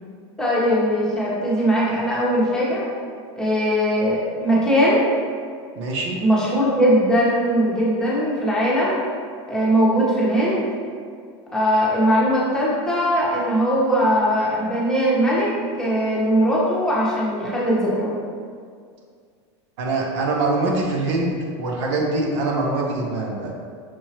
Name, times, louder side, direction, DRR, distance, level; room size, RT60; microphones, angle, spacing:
voice 1, 0.4-2.9 3.4-5.0 6.2-9.0 9.5-10.6 11.5-18.1, equal, 5° left, -8 dB, 1.2 m, -20 dB
voice 2, 5.8-6.2 19.8-23.5, right 2 dB, 70° right, -1 dB, 0.8 m, -23 dB
6.0 x 2.8 x 2.9 m, 2.1 s
supercardioid pair, 115°, 15 cm